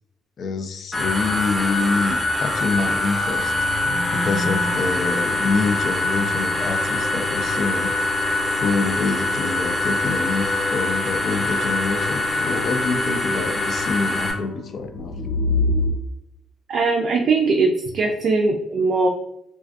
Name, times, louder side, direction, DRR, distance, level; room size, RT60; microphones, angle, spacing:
voice 1, 0.4-3.5 4.1-7.9 8.6-15.2, left 4 dB, 60° left, 7 dB, 0.3 m, -26 dB
sound 1, 0.9-14.3, left 2 dB, 15° left, 0.7 m, -24 dB
sound 2, 3.8-15.9, left 2 dB, 80° left, 0.8 m, -31 dB
voice 2, 16.7-19.1, right 3 dB, 60° right, 1 dB, 0.4 m, -20 dB
2.3 x 2.2 x 2.5 m, 0.79 s
cardioid pair, 90°, 0 cm